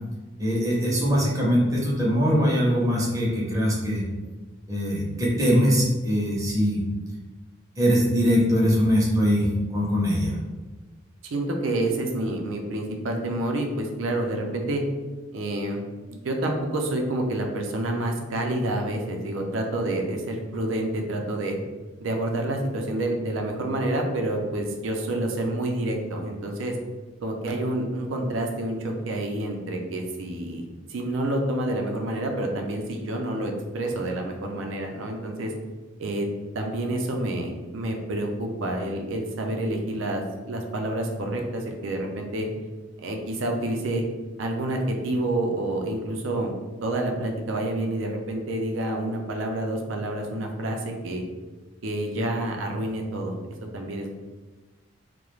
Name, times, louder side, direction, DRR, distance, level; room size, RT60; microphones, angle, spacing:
voice 1, 0.4-4.0 4.7-6.8 7.8-10.4, equal, 15° right, -5 dB, 0.6 m, -22 dB
voice 2, 11.2-14.8 15.3-15.8 16.1-21.6 22.0-26.8 27.2-30.6 30.9-35.5 36.0-36.3 36.5-42.5 43.0-44.0 44.4-46.5 46.8-51.2 51.8-53.3 53.7-54.1, right 1 dB, 80° right, 2 dB, 0.4 m, -28 dB
2.3 x 2.1 x 3.0 m, 1.3 s
head